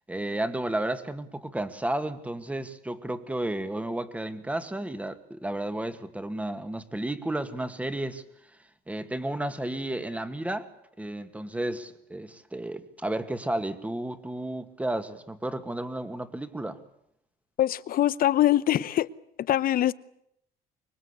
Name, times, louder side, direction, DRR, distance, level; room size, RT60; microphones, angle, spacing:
voice 1, 0.1-8.2 8.9-10.7 11.0-16.8, right 1 dB, 10° right, 2.1 m, -32 dB
voice 2, 17.6-19.1 19.5-19.9, left 13 dB, 60° left, 1.0 m, -23 dB
25.5 x 23.0 x 8.3 m
cardioid pair, 110°, 17 cm